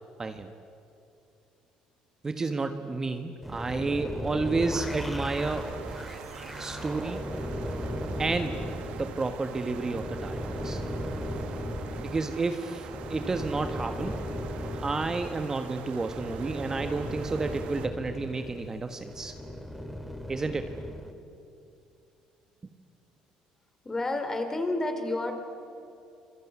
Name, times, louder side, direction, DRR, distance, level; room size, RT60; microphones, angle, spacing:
voice 1, 2.2-5.7 6.6-7.2 8.2-8.6 9.0-10.8 12.0-14.2 14.7-19.3 20.3-20.8, right 3 dB, 25° right, 7 dB, 1.5 m, -31 dB
sound 1, 3.4-21.1, equal, ahead, 2.6 m, -36 dB
sound 2, 5.3-17.9, right 10 dB, 70° right, 1.5 m, -45 dB
voice 2, 23.8-25.3, left 2 dB, 20° left, 6 dB, 4.2 m, -29 dB
27.5 x 22.0 x 9.8 m, 2.6 s
cardioid pair, 95°, 2 cm